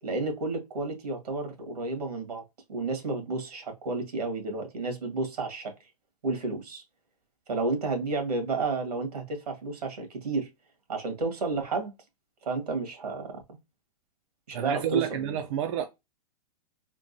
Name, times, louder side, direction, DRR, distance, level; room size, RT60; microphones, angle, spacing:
voice 1, 0.0-2.4 2.7-5.7 6.2-6.8 7.5-10.5 10.9-11.9 12.4-13.4 14.5-15.4, right 3 dB, 90° right, 1.6 m, -31 dB
voice 2, 14.5-15.9, right 10 dB, 50° right, 0.5 m, -29 dB
3.7 x 2.2 x 2.6 m
hypercardioid pair, 140°, 20 cm